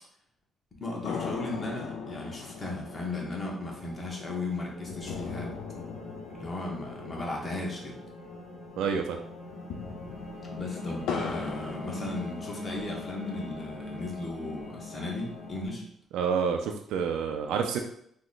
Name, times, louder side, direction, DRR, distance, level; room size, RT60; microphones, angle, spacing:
voice 1, 0.7-5.5 6.3-8.0 10.5-15.8, left 2 dB, 35° left, -1 dB, 1.0 m, -36 dB
sound 1, 1.1-8.7 8.9-9.0 9.5-12.8 13.3-14.3, left 5 dB, 85° left, 0.4 m, -40 dB
sound 2, 1.5-15.7, left 2 dB, 70° left, 1.0 m, -43 dB
voice 2, 8.8-9.2 16.1-17.8, right 6 dB, 90° right, 4 dB, 0.4 m, -28 dB
3.0 x 2.1 x 3.8 m, 0.69 s
cardioid pair, 90°, 0 cm